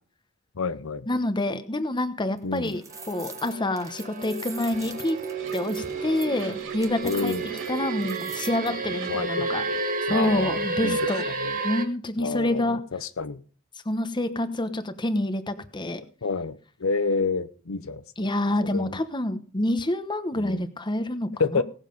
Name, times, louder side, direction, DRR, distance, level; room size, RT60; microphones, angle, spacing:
voice 1, 0.6-1.1 2.4-2.7 7.0-7.4 9.1-9.5 10.1-11.0 11.4-11.6 12.2-13.4 16.0-18.0 18.7-19.0 20.4-20.6 21.4-21.6, left 4 dB, 70° left, 12 dB, 0.7 m, -29 dB
voice 2, 1.1-2.8 3.1-5.2 5.5-7.4 7.7-9.6 10.1-11.3 11.6-12.8 13.8-16.0 18.2-21.6, left 1 dB, 20° left, 10 dB, 1.1 m, -27 dB
sound 1, 2.4-8.7, right 5 dB, 15° right, 1.3 m, -43 dB
sound 2, 2.9-11.8, right 3 dB, 40° right, 2.0 m, -31 dB
sound 3, 4.6-9.8, right 3 dB, 65° right, 2.3 m, -42 dB
18.0 x 7.3 x 5.3 m, 0.41 s
head